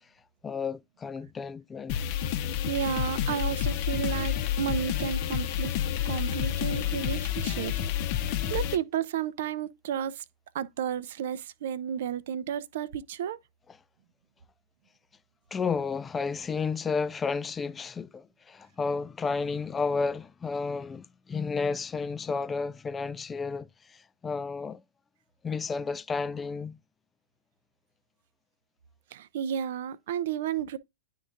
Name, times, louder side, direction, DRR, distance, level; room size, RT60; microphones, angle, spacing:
voice 1, 0.4-2.0 6.8-7.0 15.5-24.8 25.4-26.8, left 4 dB, 15° left, 0.3 m, -32 dB
sound 1, 1.9-8.8, left 10 dB, 40° left, 0.7 m, -29 dB
voice 2, 2.7-5.7 6.1-7.7 8.5-10.2 10.5-13.4 29.1-30.8, right 9 dB, 50° right, 0.5 m, -32 dB
11.0 x 3.7 x 2.5 m
figure-of-eight pair, 105°, 0 cm